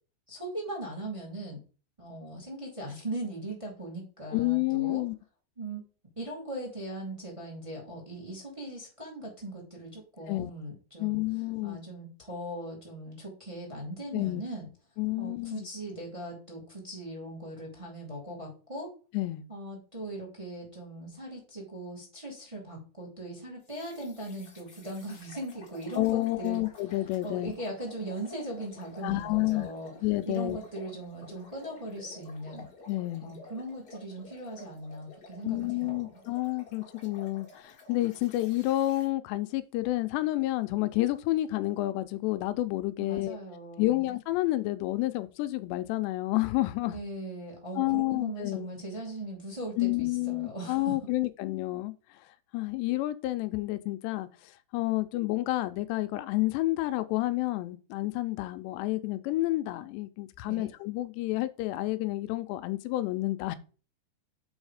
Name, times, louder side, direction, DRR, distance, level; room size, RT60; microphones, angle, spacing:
voice 1, 0.3-1.6 2.0-5.0 5.6-5.8 6.1-11.2 11.6-14.7 15.2-18.9 19.5-26.6 27.2-29.9 30.2-32.7 33.2-36.2 43.0-44.1 46.9-50.9 60.5-60.7, right 1 dB, 10° right, 1.6 m, -39 dB
voice 2, 4.3-5.2 10.3-10.5 11.0-11.8 14.1-14.4 15.0-15.7 19.1-19.4 25.9-27.5 29.0-29.7 30.0-30.6 32.9-33.3 35.4-43.4 43.8-47.0 47.8-48.7 49.8-52.3 52.5-63.6, left 18 dB, 80° left, 2.7 m, -30 dB
sound 1, 23.7-39.1, left 2 dB, 50° left, 1.2 m, -51 dB
7.2 x 4.8 x 4.9 m
omnidirectional pair, 5.1 m